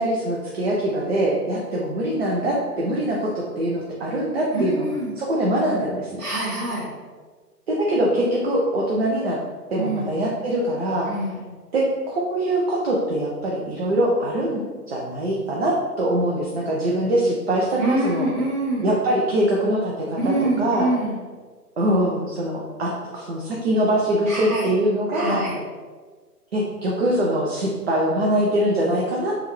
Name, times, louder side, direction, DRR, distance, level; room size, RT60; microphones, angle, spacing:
voice 1, 0.0-4.9 5.2-6.2 7.7-9.4 9.7-11.1 11.7-18.3 18.8-20.9 21.8-25.4 26.5-29.3, right 1 dB, 45° right, -3 dB, 0.4 m, -23 dB
voice 2, 4.5-5.1 6.2-6.9 9.8-10.1 11.0-11.4 17.8-18.9 20.2-21.2 24.3-24.7 25.1-25.6, right 1 dB, 25° right, -7 dB, 1.1 m, -25 dB
3.5 x 2.3 x 3.0 m, 1.4 s
figure-of-eight pair, 130°, 48 cm